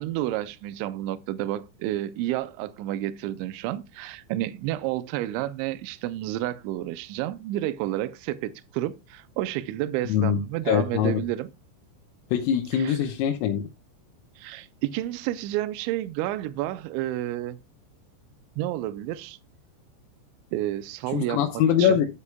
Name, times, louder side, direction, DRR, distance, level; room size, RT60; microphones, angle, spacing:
voice 1, 0.0-11.5 12.7-13.0 14.4-17.6 18.6-19.4 20.5-21.4 21.8-22.0, right 14 dB, 90° right, 2.6 m, -30 dB
voice 2, 10.1-10.4 10.7-11.2 12.3-13.7 21.1-22.1, left 9 dB, 90° left, 3.6 m, -23 dB
12.5 x 8.2 x 2.2 m
omnidirectional pair, 5.9 m